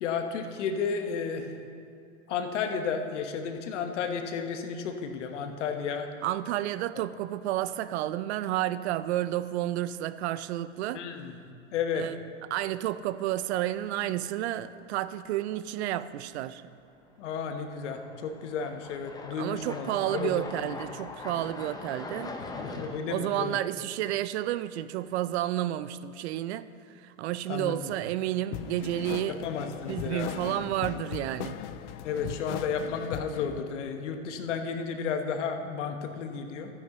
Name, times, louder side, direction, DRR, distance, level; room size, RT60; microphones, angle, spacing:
voice 1, 0.0-1.5 2.3-6.1 10.9-11.4 11.7-12.1 17.2-20.8 22.5-23.6 27.5-27.9 29.3-30.4 32.0-36.7, left 6 dB, 70° left, 6 dB, 1.1 m, -33 dB
sound 1, 5.0-5.7 6.1-6.2 9.0-9.1 10.5-10.7 11.0-11.1 16.5-16.6 17.3-23.0, left 3 dB, 10° left, 0.7 m, -42 dB
voice 2, 6.2-11.0 11.9-12.1 12.5-16.6 19.4-22.4 23.1-26.7 27.0-29.4 29.9-31.6, right 13 dB, 60° right, 15 dB, 0.5 m, -31 dB
sound 2, 28.5-33.6, left 12 dB, 40° left, 0.4 m, -38 dB
13.0 x 10.0 x 3.0 m, 2.6 s
hypercardioid pair, 105°, 37 cm